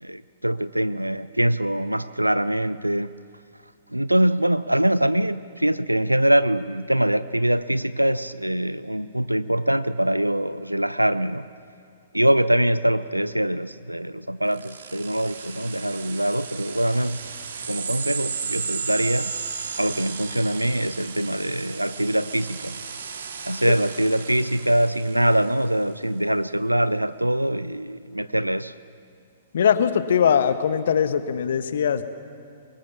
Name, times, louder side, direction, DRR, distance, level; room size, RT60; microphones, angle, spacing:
voice 1, 0.0-3.1 3.9-11.5 12.1-17.3 17.7-19.3 19.8-22.8 23.5-28.7, right 1 dB, 90° right, 16 dB, 0.5 m, -23 dB
sound 1, 14.5-25.6, right 6 dB, 60° right, 2.2 m, -34 dB
voice 2, 29.5-32.0, left 8 dB, 60° left, 12 dB, 1.2 m, -21 dB
23.5 x 21.0 x 7.2 m, 2.3 s
figure-of-eight pair, 110°, 0 cm